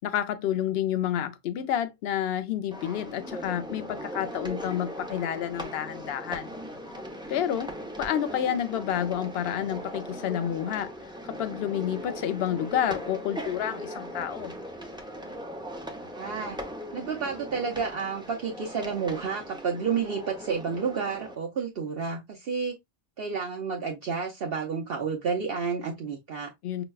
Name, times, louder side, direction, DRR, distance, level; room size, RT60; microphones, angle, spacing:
voice 1, 0.0-6.5 7.3-7.7 8.0-10.9 11.3-14.5 26.6-26.8, left 10 dB, 60° left, 0.7 m, -29 dB
sound 1, 2.7-21.4, equal, 5° right, 0.3 m, -39 dB
voice 2, 16.1-16.6 16.9-22.8 23.2-26.5, right 5 dB, 55° right, 0.8 m, -30 dB
6.0 x 2.2 x 2.3 m
omnidirectional pair, 1.3 m